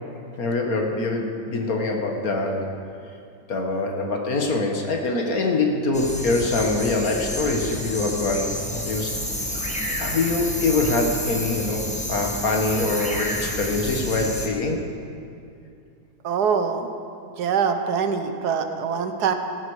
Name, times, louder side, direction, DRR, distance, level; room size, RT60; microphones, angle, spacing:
voice 1, 0.4-2.7 3.5-9.1 10.0-14.8, left 3 dB, 65° left, 2 dB, 1.9 m, -24 dB
sound 1, 5.9-14.5, equal, 5° left, 1.4 m, -30 dB
voice 2, 16.2-16.9 17.4-19.3, right 6 dB, 85° right, 7 dB, 1.6 m, -24 dB
16.5 x 14.5 x 4.8 m, 2.5 s
omnidirectional pair, 1.7 m